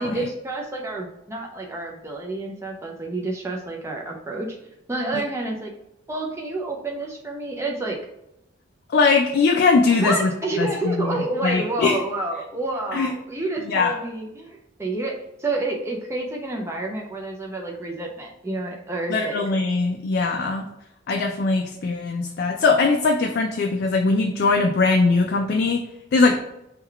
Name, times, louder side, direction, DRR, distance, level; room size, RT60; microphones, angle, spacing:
voice 1, 0.0-4.6 4.9-5.7 6.1-8.0 9.9-19.4, right 2 dB, 15° right, 0 dB, 0.4 m, -29 dB
voice 2, 8.9-10.3 10.6-11.2 11.4-12.0 12.9-13.1 13.7-13.9 19.1-20.7 21.1-25.8 26.1-26.4, left 4 dB, 55° left, 3 dB, 0.3 m, -20 dB
3.7 x 2.3 x 4.3 m, 0.85 s
head